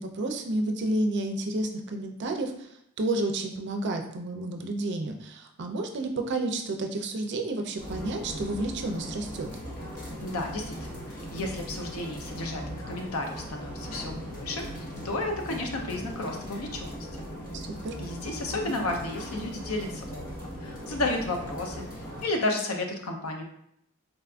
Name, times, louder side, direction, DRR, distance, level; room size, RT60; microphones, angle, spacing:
voice 1, 0.0-9.5 17.5-18.0 18.5-18.7, right 2 dB, 55° right, 4 dB, 0.4 m, -31 dB
sound 1, 7.8-22.2, equal, 45° left, 1.1 m, -39 dB
voice 2, 10.2-17.3 18.0-21.9 22.2-23.4, left 2 dB, 80° left, 3 dB, 0.6 m, -33 dB
3.9 x 2.4 x 2.3 m, 0.73 s
head